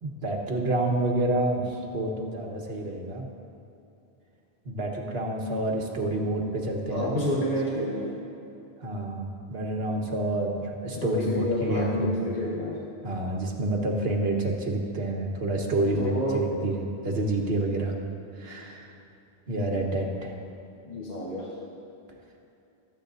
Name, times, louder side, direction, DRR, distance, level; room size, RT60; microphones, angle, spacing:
voice 1, 0.0-3.3 4.6-7.4 8.8-12.3 13.0-17.9 18.4-18.9 19.5-20.3, right 2 dB, 70° right, 0 dB, 1.6 m, -28 dB
voice 2, 6.9-8.2 10.9-12.8 15.6-16.5 20.9-21.5, left 1 dB, 40° left, -6 dB, 1.5 m, -29 dB
25.0 x 8.6 x 2.6 m, 2.7 s
omnidirectional pair, 1.0 m